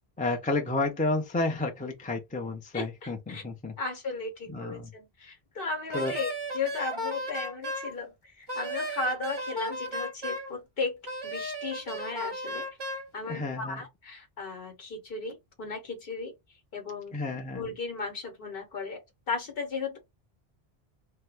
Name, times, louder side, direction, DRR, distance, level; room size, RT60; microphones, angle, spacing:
voice 1, 0.2-3.7 4.5-4.9 5.9-6.1 13.3-13.8 17.1-17.6, left 2 dB, 10° left, 0.4 m, -31 dB
voice 2, 2.7-3.4 3.8-12.7 13.1-16.3 16.7-17.1 17.5-20.0, left 4 dB, 65° left, 1.1 m, -36 dB
Wind instrument woodwind instrument, 5.9-7.9 8.5-10.5 11.1-13.1, equal, 25° right, 0.8 m, -35 dB
2.8 x 2.2 x 3.3 m
omnidirectional pair, 1.0 m